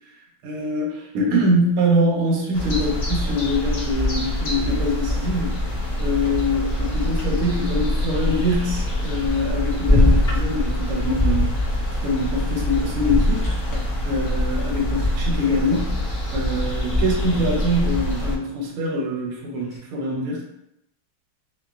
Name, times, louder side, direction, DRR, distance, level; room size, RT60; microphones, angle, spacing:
voice 1, 0.4-5.6 6.0-11.7 12.0-13.5 14.0-15.9 16.3-20.4, left 1 dB, 85° right, -1 dB, 1.6 m, -24 dB
sound 1, 2.5-18.3, left 1 dB, 70° left, 0.7 m, -25 dB
sound 2, 9.8-10.5 11.2-11.7 13.0-13.7 15.0-15.4 16.9-17.3 19.7-19.8, left 1 dB, 20° left, 0.6 m, -20 dB
4.4 x 2.1 x 2.4 m, 0.81 s
omnidirectional pair, 2.3 m